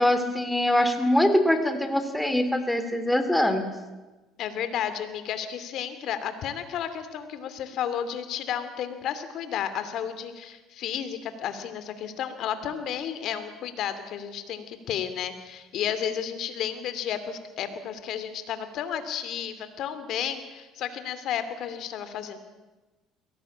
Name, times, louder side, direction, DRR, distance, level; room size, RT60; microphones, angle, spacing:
voice 1, 0.0-3.7, left 1 dB, 5° left, 8 dB, 2.8 m, -23 dB
voice 2, 4.4-22.4, left 9 dB, 65° left, 11 dB, 2.7 m, -32 dB
22.5 x 18.0 x 8.7 m, 1.2 s
cardioid pair, 100°, 0 cm